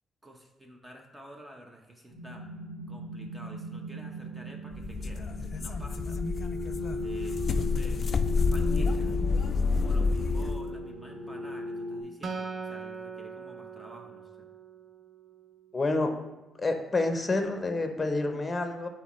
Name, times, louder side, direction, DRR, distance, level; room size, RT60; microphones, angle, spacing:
voice 1, 0.2-6.2 7.0-8.0 8.3-9.2 9.8-14.5, right 1 dB, 15° right, 2 dB, 0.8 m, -50 dB
sound 1, 2.1-12.0, left 1 dB, 70° right, 1.9 m, -37 dB
sound 2, 4.7-10.7, left 4 dB, 45° left, 0.4 m, -28 dB
Acoustic guitar, 12.2-15.7, right 5 dB, 45° right, 0.7 m, -41 dB
voice 2, 15.7-16.1 16.6-18.9, left 2 dB, 25° left, 5 dB, 0.8 m, -28 dB
8.1 x 4.3 x 3.1 m, 1.0 s
cardioid pair, 90°, 0 cm